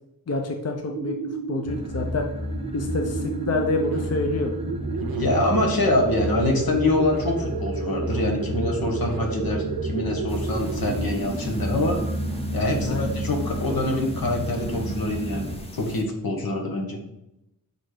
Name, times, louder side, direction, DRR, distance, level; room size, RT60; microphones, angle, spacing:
voice 1, 0.3-1.1 1.5-2.3 2.7-4.5 12.8-13.1, left 3 dB, 45° left, 2 dB, 0.8 m, -27 dB
sound 1, 0.8-15.7, right 5 dB, 75° right, 0.7 m, -33 dB
sound 2, 1.7-15.6, equal, 15° right, 0.7 m, -32 dB
voice 2, 5.0-12.0 12.5-17.0, left 2 dB, 75° left, 2 dB, 1.3 m, -25 dB
sound 3, 10.3-16.0, left 1 dB, 15° left, 1.0 m, -43 dB
5.2 x 4.1 x 5.0 m, 0.87 s
cardioid pair, 55°, 36 cm